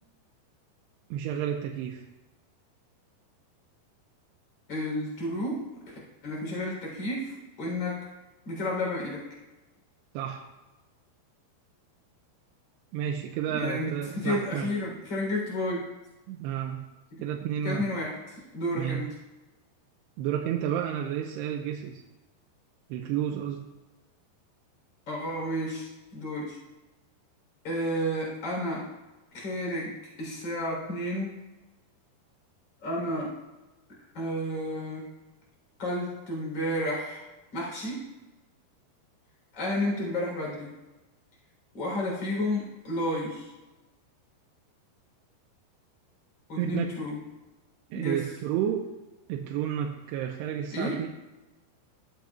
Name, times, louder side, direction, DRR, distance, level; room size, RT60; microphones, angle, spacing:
voice 1, 1.1-2.0 10.1-10.4 12.9-14.7 16.3-16.8 17.2-17.9 18.8-19.0 20.2-22.0 22.9-23.7 46.6-46.9 47.9-48.9 49.3-51.1, right 9 dB, 80° right, 1 dB, 2.6 m, -31 dB
voice 2, 4.7-5.6 5.9-6.0 6.2-8.0 8.4-9.2 13.5-13.9 14.2-15.9 17.1-17.2 17.6-19.1 25.1-26.6 27.6-28.9 29.3-29.9 30.2-31.4 32.8-33.3 34.1-35.1 35.8-37.2 37.5-38.1 39.5-40.7 41.7-43.5 46.5-47.2 47.9-48.2 50.7-51.0, left 1 dB, 30° left, -3 dB, 3.8 m, -31 dB
15.5 x 7.9 x 2.4 m, 1.1 s
omnidirectional pair, 5.0 m